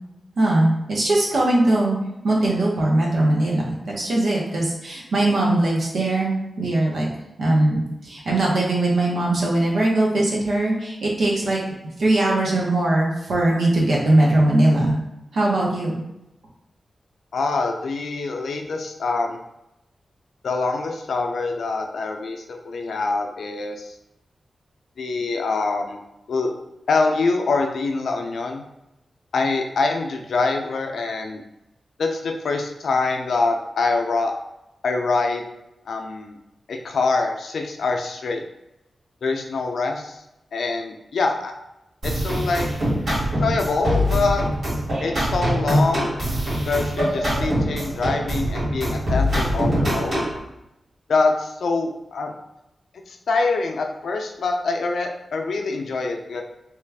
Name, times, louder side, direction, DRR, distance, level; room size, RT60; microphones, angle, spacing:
voice 1, 0.4-2.0 2.2-7.1 7.4-11.6 12.0-15.0 15.3-16.0, right 1 dB, 80° right, -4 dB, 0.9 m, -20 dB
voice 2, 17.3-19.4 20.4-23.9 25.0-26.0 26.3-26.5 26.9-28.6 29.3-31.4 32.0-34.3 34.8-35.4 35.9-36.4 36.7-38.4 39.2-40.2 40.5-41.5 42.0-42.7 43.2-44.4 45.0-46.2 46.7-50.3 51.1-52.3 53.1-56.4, left 3 dB, 85° left, 3 dB, 0.4 m, -24 dB
sound 1, 42.0-50.4, equal, 65° right, 1.5 m, -23 dB
3.0 x 2.4 x 3.3 m, 0.89 s
wide cardioid pair, 125°, 0 cm